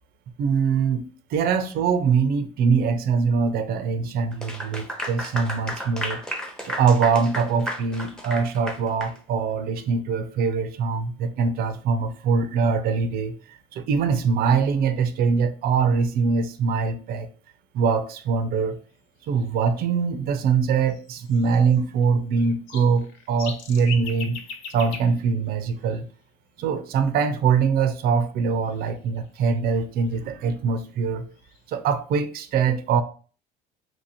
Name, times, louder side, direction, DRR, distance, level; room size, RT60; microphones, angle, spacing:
voice 1, 0.4-1.0 1.3-6.2 6.6-17.3 17.7-18.8 19.3-24.4 24.7-26.1 26.6-31.3 31.7-33.0, right 5 dB, 60° right, 0.5 m, -23 dB
Clapping / Applause, 4.3-9.2, equal, 5° left, 0.7 m, -33 dB
sound 1, 18.9-19.0 19.2-19.5 20.9-22.1 22.4-26.2 28.5-30.2 31.0-31.1 31.3-31.7, left 6 dB, 85° left, 0.5 m, -41 dB
2.9 x 2.6 x 2.8 m
cardioid pair, 105°, 18 cm